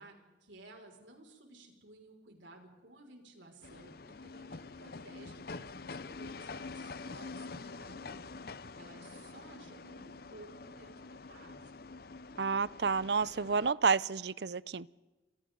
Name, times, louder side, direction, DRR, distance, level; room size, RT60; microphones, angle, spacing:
voice 1, 0.0-11.7, right 2 dB, 85° right, 2 dB, 5.7 m, -56 dB
sound 1, 3.6-13.7, left 4 dB, 55° left, 0.7 m, -46 dB
voice 2, 12.4-14.9, right 5 dB, 65° right, 20 dB, 0.6 m, -30 dB
29.5 x 26.5 x 3.9 m, 1.1 s
head